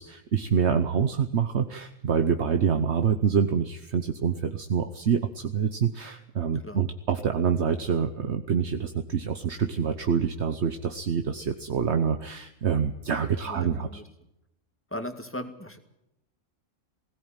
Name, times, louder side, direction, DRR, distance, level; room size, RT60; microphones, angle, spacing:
voice 1, 0.0-14.0, right 7 dB, 65° right, 7 dB, 1.3 m, -26 dB
voice 2, 13.4-14.0 14.9-15.8, left 1 dB, 10° left, 6 dB, 2.1 m, -37 dB
19.5 x 17.0 x 9.0 m, 0.84 s
omnidirectional pair, 1.3 m